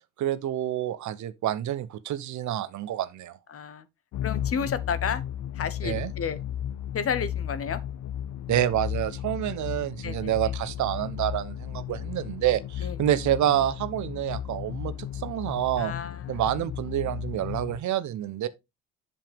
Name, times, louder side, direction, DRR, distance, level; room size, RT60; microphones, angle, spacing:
voice 1, 0.2-3.4 5.8-6.1 8.5-15.9 16.3-18.5, right 12 dB, 60° right, 0.9 m, -28 dB
voice 2, 3.5-3.9 4.2-5.2 5.5-6.4 6.9-7.8 10.0-10.4 12.8-13.0 15.8-16.4, left 7 dB, 45° left, 1.1 m, -31 dB
sound 1, 4.1-17.8, left 10 dB, 60° left, 0.6 m, -34 dB
7.7 x 7.2 x 3.4 m
supercardioid pair, 80°, 33 cm